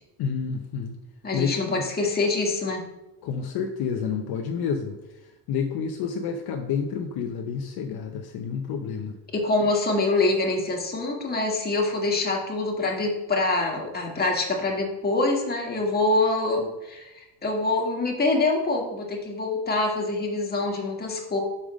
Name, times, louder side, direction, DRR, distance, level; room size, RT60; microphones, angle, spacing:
voice 1, 0.2-0.9 1.3-1.8 3.2-9.1, left 6 dB, 55° left, 5 dB, 0.8 m, -29 dB
voice 2, 1.2-2.8 9.3-21.4, left 2 dB, 20° left, -1 dB, 1.8 m, -25 dB
5.7 x 5.0 x 6.3 m, 0.99 s
cardioid pair, 120°, 44 cm